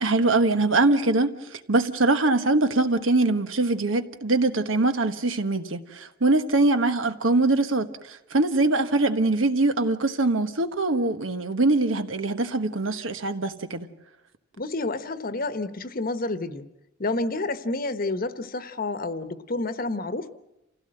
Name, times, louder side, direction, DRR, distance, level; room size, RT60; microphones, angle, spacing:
voice 1, 0.0-13.9, right 2 dB, 80° right, 1.3 m, -23 dB
voice 2, 14.6-16.7 17.0-20.3, left 2 dB, 45° left, 1.1 m, -29 dB
28.0 x 16.5 x 7.8 m
head